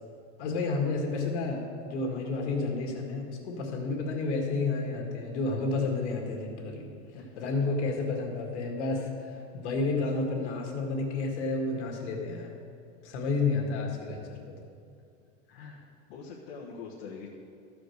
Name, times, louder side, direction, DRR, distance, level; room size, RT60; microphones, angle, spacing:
voice 1, 0.4-6.9 7.4-12.6 13.0-14.2, left 3 dB, 75° left, 1 dB, 2.1 m, -31 dB
voice 2, 7.1-7.4 15.5-17.3, left 5 dB, 60° left, -4 dB, 1.3 m, -44 dB
14.0 x 5.2 x 6.5 m, 2.5 s
supercardioid pair, 175°, 34 cm